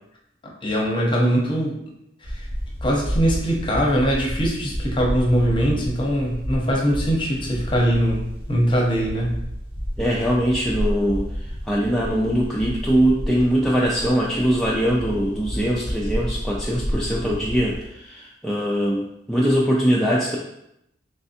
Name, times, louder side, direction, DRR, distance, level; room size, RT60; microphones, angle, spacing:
voice 1, 0.6-1.8 2.2-2.4 2.8-8.2 8.5-9.4, equal, 25° left, -1 dB, 0.7 m, -21 dB
sound 1, 2.2-17.9, equal, 30° right, 0.7 m, -30 dB
voice 2, 10.0-20.4, equal, 5° left, -5 dB, 0.3 m, -22 dB
3.3 x 3.2 x 2.8 m, 0.81 s
head